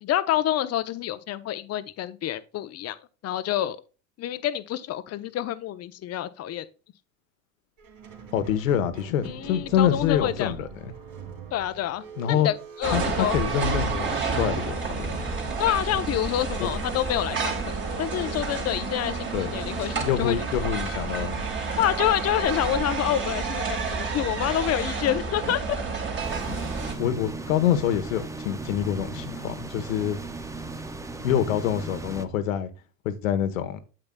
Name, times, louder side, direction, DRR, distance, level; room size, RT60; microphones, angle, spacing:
voice 1, 0.0-3.0 3.2-3.8 4.2-6.7 9.2-10.5 11.5-12.5 12.8-13.4 15.6-20.4 21.8-25.8, left 12 dB, 40° left, 0.8 m, -27 dB
Squeak, 7.8-14.1 15.1-20.2, right 5 dB, 50° right, 2.7 m, -44 dB
voice 2, 8.3-10.9 12.2-12.5 12.9-15.3 16.6-16.7 19.3-19.5 20.0-21.5 26.5-26.6 27.0-30.2 31.2-32.7 33.0-33.8, left 9 dB, 85° left, 1.2 m, -26 dB
sound 1, 12.8-26.9, right 4 dB, 30° right, 2.7 m, -30 dB
sound 2, 26.2-32.3, right 3 dB, 10° right, 0.6 m, -37 dB
8.9 x 7.9 x 2.2 m
hypercardioid pair, 95°, 40 cm